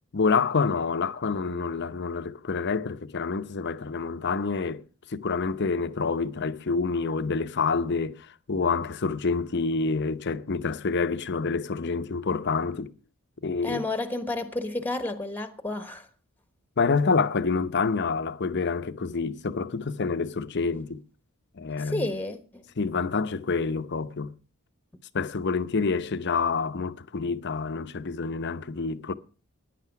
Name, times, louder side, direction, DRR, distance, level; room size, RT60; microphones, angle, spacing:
voice 1, 0.1-4.8 5.1-12.9 13.4-13.8 16.8-21.0 21.6-22.1 22.8-24.3 25.1-29.1, left 4 dB, 50° left, 0.7 m, -27 dB
voice 2, 13.6-16.1 21.8-22.7, left 2 dB, 10° left, 1.1 m, -31 dB
14.0 x 10.5 x 5.8 m
head